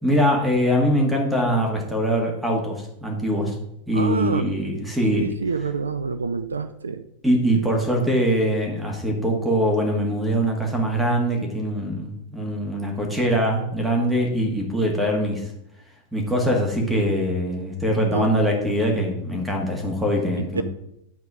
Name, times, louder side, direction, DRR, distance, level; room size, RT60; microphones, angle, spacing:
voice 1, 0.0-3.6 3.9-5.3 7.2-15.5 16.1-20.6, equal, 5° right, 0 dB, 2.0 m, -22 dB
voice 2, 3.9-4.7 5.1-7.0 18.1-18.4 20.5-20.6, right 5 dB, 75° right, 11 dB, 0.4 m, -27 dB
9.3 x 4.1 x 5.0 m, 0.80 s
figure-of-eight pair, 90°, 0 cm